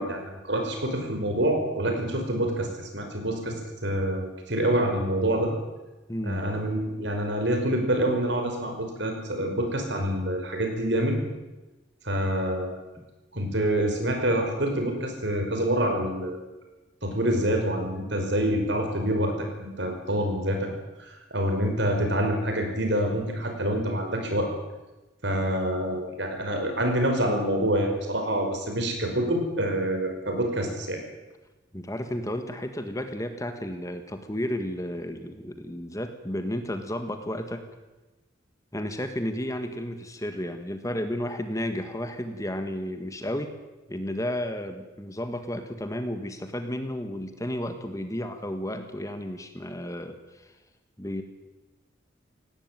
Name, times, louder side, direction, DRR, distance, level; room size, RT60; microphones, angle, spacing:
voice 1, 0.0-5.5 6.2-11.2 12.0-12.7 13.3-16.4 17.0-20.7 21.0-24.5 25.2-31.0, right 1 dB, 65° right, 3 dB, 5.3 m, -26 dB
voice 2, 6.1-6.4 13.0-13.1 31.7-37.6 38.7-43.5 43.9-50.5 51.0-51.2, left 1 dB, 15° left, 7 dB, 1.5 m, -32 dB
18.0 x 17.5 x 9.3 m, 1.1 s
head